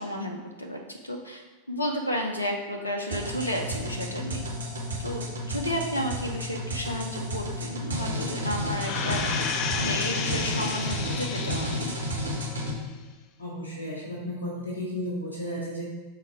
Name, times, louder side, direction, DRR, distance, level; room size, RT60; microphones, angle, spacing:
voice 1, 0.0-4.4 5.0-12.0, equal, 80° left, 2 dB, 0.6 m, -32 dB
sound 1, 3.1-12.7, equal, 70° right, 1.3 m, -32 dB
sound 2, 8.8-12.2 12.6-12.7, left 6 dB, 40° left, 0.4 m, -32 dB
voice 2, 13.4-15.9, equal, 65° left, -4 dB, 1.5 m, -33 dB
5.6 x 4.1 x 4.7 m, 1.3 s
figure-of-eight pair, 90°, 0 cm